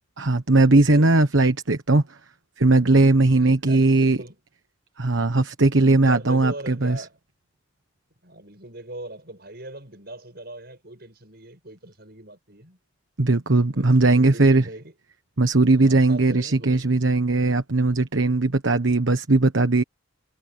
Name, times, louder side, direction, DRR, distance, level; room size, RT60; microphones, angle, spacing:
voice 1, 0.2-2.0 2.6-4.2 5.0-7.0 13.2-14.6 15.4-19.8, right 2 dB, 65° right, 1.3 m, -19 dB
voice 2, 0.8-1.1 3.4-4.4 5.7-7.2 8.2-12.8 13.7-14.9 15.8-16.9, right 1 dB, 50° right, 7.6 m, -40 dB
head